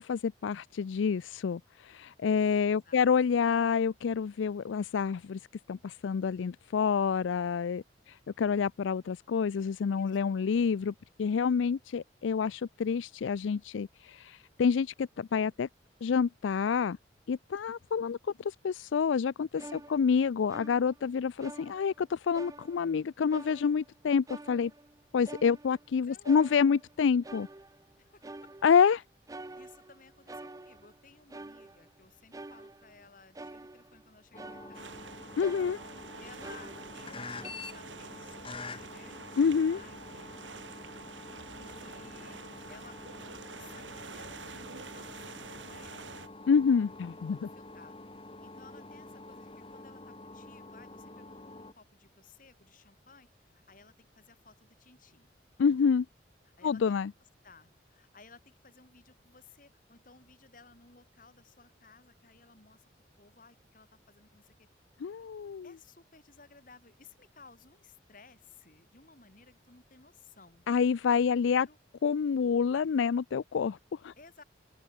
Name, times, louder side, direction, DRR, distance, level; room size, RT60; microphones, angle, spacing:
voice 1, 0.0-5.4 5.7-10.9 11.2-15.7 16.0-17.0 17.3-24.7 25.1-27.5 28.6-29.0 35.4-35.8 39.4-39.8 46.5-47.5 55.6-56.1 56.6-57.1 65.0-65.7 70.7-71.7 72.0-73.8 74.0-74.1, left 6 dB, 90° left, 0.4 m, -28 dB
voice 2, 2.6-3.4 10.0-10.4 19.7-20.0 26.1-26.4 28.0-28.5 29.5-35.1 36.2-40.4 41.5-46.3 47.3-48.1 48.4-55.3 56.6-57.0 57.4-62.8 63.2-64.7 65.6-70.6 71.3-71.8 74.2-74.4, left 4 dB, 45° left, 3.4 m, -58 dB
sound 1, 19.6-21.1 21.4-22.1 22.3-23.0 23.3-23.9 24.3-25.9 26.2-27.0 27.2-27.9 28.2-28.9 29.3-31.0 31.3-32.0 32.3-33.0 33.3-34.1 34.4-35.1 35.4-37.1 37.4-37.5, right 2 dB, 20° right, 0.5 m, -48 dB
sound 2, 34.3-51.7, left 3 dB, 30° left, 1.9 m, -47 dB
sound 3, 34.7-46.3, right 4 dB, 85° right, 3.9 m, -47 dB
open air
head